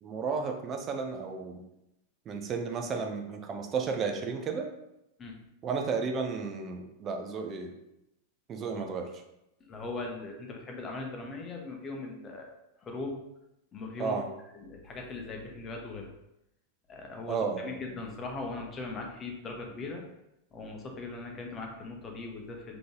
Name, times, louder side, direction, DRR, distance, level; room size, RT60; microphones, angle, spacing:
voice 1, 0.0-1.6 2.3-4.7 5.6-7.8 8.5-9.1 14.0-14.3 17.3-17.8, right 5 dB, 30° right, 4 dB, 0.6 m, -33 dB
voice 2, 9.7-12.5 12.8-13.2 13.7-14.2 14.5-16.1 16.9-20.0 20.5-22.8, left 3 dB, 25° left, 1 dB, 0.9 m, -39 dB
3.8 x 2.9 x 3.6 m, 0.85 s
figure-of-eight pair, 90°, 0 cm